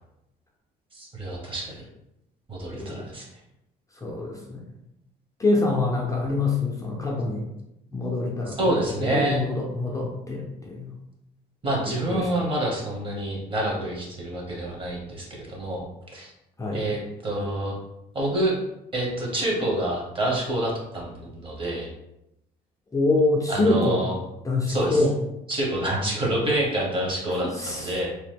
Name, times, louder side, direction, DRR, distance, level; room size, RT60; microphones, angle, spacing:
voice 1, 0.9-1.7 2.5-3.2 8.6-9.5 11.6-15.9 16.1-16.3 16.7-17.7 18.1-18.5 18.9-21.9 23.5-24.1 24.7-25.0 25.5-28.1, right 1 dB, 30° right, -2 dB, 1.1 m, -27 dB
voice 2, 2.7-3.1 4.0-4.6 5.4-7.4 7.9-10.9 12.1-12.3 16.6-16.9 22.9-24.0 24.4-25.1 27.4-28.0, left 2 dB, 20° left, -3 dB, 0.5 m, -25 dB
2.9 x 2.0 x 3.4 m, 0.86 s
cardioid pair, 110°, 17 cm